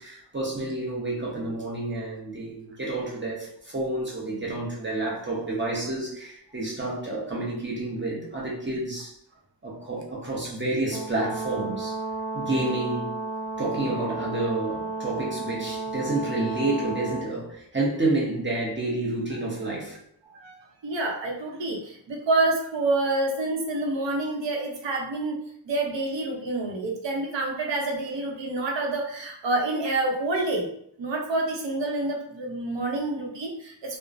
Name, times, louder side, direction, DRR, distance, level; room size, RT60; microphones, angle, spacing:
voice 1, 0.0-9.1 9.6-12.0 12.3-13.2 13.6-20.0, right 2 dB, 25° right, -4 dB, 0.8 m, -29 dB
Brass instrument, 10.9-17.3, right 3 dB, 5° right, 0.5 m, -33 dB
voice 2, 20.3-25.4 25.6-30.7 31.0-34.0, right 2 dB, 75° right, 0 dB, 0.7 m, -28 dB
2.9 x 2.1 x 2.4 m, 0.70 s
wide cardioid pair, 115°, 44 cm